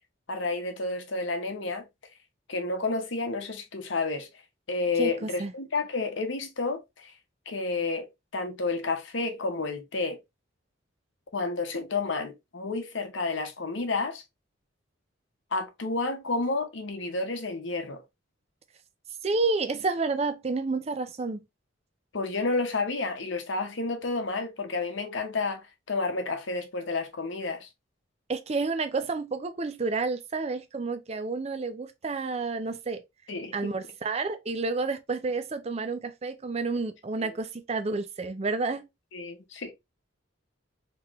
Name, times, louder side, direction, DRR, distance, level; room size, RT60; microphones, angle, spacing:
voice 1, 0.3-1.9 2.5-4.3 4.7-7.1 7.5-8.1 8.3-10.2 11.3-14.2 15.5-18.0 22.1-27.7 33.3-33.7 37.2-37.3 39.1-39.7, left 3 dB, 65° left, 0.8 m, -30 dB
voice 2, 5.0-5.5 19.2-21.4 28.3-33.0 33.5-38.9, right 3 dB, 30° right, 0.4 m, -30 dB
3.7 x 3.0 x 2.9 m
head